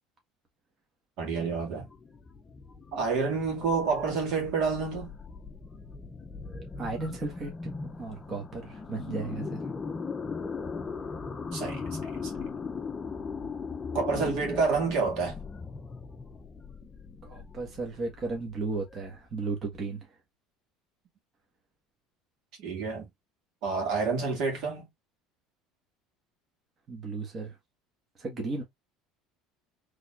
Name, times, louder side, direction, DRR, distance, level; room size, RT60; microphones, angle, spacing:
voice 1, 1.2-1.9 2.9-5.1 11.5-12.2 13.9-15.3 22.6-23.1 23.6-24.9, right 4 dB, 65° right, 2.0 m, -29 dB
sound 1, 1.7-19.5, left 4 dB, 20° left, 0.6 m, -39 dB
voice 2, 6.8-9.6 17.2-20.2 26.9-27.6 28.2-28.6, right 3 dB, 30° right, 1.4 m, -35 dB
4.1 x 3.3 x 2.5 m
cardioid pair, 125°, 0 cm